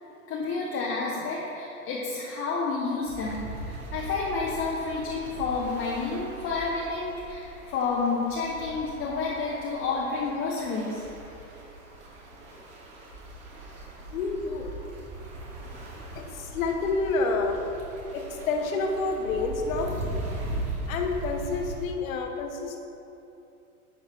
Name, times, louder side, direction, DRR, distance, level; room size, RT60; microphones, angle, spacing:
voice 1, 0.3-11.0, left 4 dB, 30° left, -4 dB, 0.9 m, -30 dB
sound 1, 3.0-21.9, right 1 dB, 50° right, 1.7 m, -39 dB
voice 2, 14.1-14.7 16.1-17.6 18.1-19.9 20.9-22.8, left 3 dB, 65° left, 3 dB, 1.1 m, -29 dB
10.0 x 5.3 x 3.1 m, 2.8 s
hypercardioid pair, 95°, 44 cm